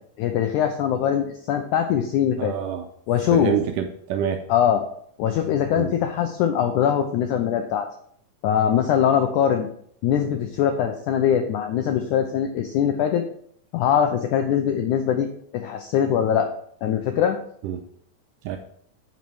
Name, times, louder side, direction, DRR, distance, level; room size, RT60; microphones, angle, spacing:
voice 1, 0.2-2.5 3.1-3.6 4.5-4.8 5.2-7.9 8.4-9.7 10.0-13.2 13.7-15.3 15.5-16.5 16.8-17.4, left 9 dB, 85° left, 6 dB, 1.7 m, -22 dB
voice 2, 2.4-2.9 3.3-4.4 5.8-5.9 17.6-17.8 18.5-18.6, right 8 dB, 85° right, 5 dB, 1.9 m, -26 dB
9.4 x 5.7 x 4.7 m, 0.65 s
omnidirectional pair, 4.3 m